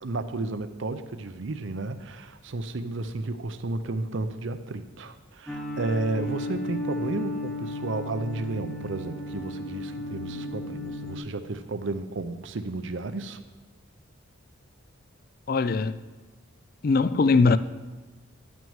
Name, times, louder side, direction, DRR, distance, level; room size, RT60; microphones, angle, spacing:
voice 1, 0.0-13.4, right 2 dB, 60° right, 0.6 m, -32 dB
sound 1, 5.5-11.2, left 1 dB, 5° left, 0.8 m, -34 dB
voice 2, 15.5-16.0 16.8-17.6, left 4 dB, 45° left, 0.3 m, -21 dB
11.0 x 6.1 x 7.2 m
head